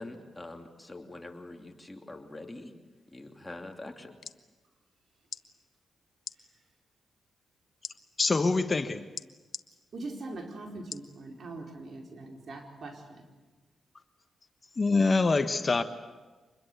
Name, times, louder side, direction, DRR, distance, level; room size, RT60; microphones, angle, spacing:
voice 1, 0.0-2.7 3.1-4.2, left 2 dB, 15° left, 4 dB, 2.8 m, -44 dB
sound 1, 4.2-4.4 5.2-5.4 6.2-6.4 7.8-8.0 9.2-9.7 10.9-11.1 11.7-11.8, left 5 dB, 55° left, 1.0 m, -40 dB
voice 2, 8.2-9.1 14.8-15.8, left 3 dB, 35° left, 9 dB, 1.3 m, -25 dB
voice 3, 9.9-13.2, right 2 dB, 60° right, 2 dB, 4.5 m, -42 dB
25.5 x 21.5 x 8.1 m, 1.2 s
cardioid pair, 65°, 0 cm